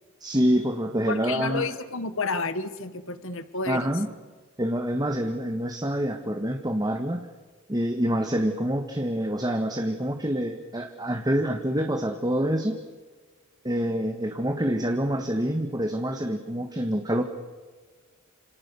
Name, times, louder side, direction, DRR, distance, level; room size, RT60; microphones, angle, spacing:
voice 1, 0.2-1.7 3.7-4.1 4.6-7.3 7.7-12.8 13.6-17.2, equal, 20° right, 5 dB, 1.5 m, -26 dB
voice 2, 1.1-3.9, left 3 dB, 60° left, 13 dB, 1.5 m, -30 dB
28.0 x 27.0 x 7.0 m, 1.4 s
head